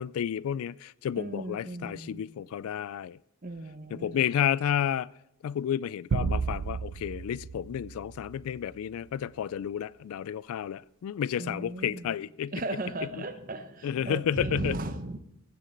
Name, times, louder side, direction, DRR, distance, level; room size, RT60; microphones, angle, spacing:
voice 1, 0.0-3.2 3.9-5.1 5.4-12.5 13.8-14.8, left 9 dB, 85° left, 0.3 m, -31 dB
voice 2, 1.2-2.2 3.4-4.2 11.4-12.1 12.5-15.2, right 2 dB, 40° right, 0.7 m, -36 dB
sound 1, 6.1-8.7, right 5 dB, 90° right, 0.4 m, -33 dB
15.5 x 7.5 x 3.9 m
head